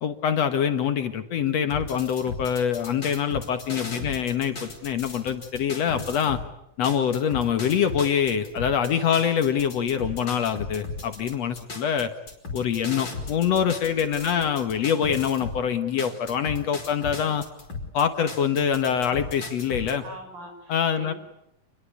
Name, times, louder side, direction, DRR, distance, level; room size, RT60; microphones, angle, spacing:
voice 1, 0.0-6.4 6.8-12.1 12.5-17.4 17.9-20.0 20.7-21.1, left 8 dB, 60° left, 9 dB, 2.1 m, -25 dB
sound 1, 1.7-6.5 6.8-15.6 16.0-19.9, left 3 dB, 35° left, 5.2 m, -36 dB
voice 2, 20.0-21.2, right 1 dB, 85° right, 6 dB, 7.1 m, -43 dB
28.0 x 22.0 x 8.5 m, 0.81 s
omnidirectional pair, 3.9 m